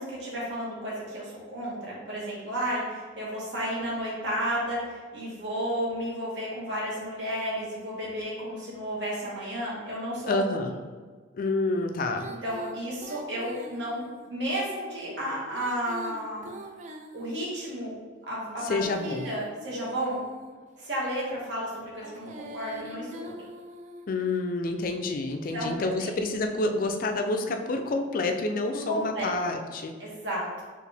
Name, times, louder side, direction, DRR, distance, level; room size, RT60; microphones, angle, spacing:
voice 1, 0.0-10.7 12.4-16.5 17.1-17.9 18.3-18.8 19.0-20.3 20.8-23.3 25.5-26.1 28.7-29.3 30.0-30.6, equal, 60° right, -5 dB, 1.3 m, -32 dB
voice 2, 10.3-10.7 11.3-12.3 18.6-19.3 24.1-29.9, left 2 dB, 45° left, 5 dB, 0.3 m, -28 dB
Female singing, 12.1-14.3 15.4-17.7 18.5-20.7 21.9-24.2, equal, 35° right, 0.3 m, -43 dB
4.7 x 2.5 x 3.3 m, 1.5 s
head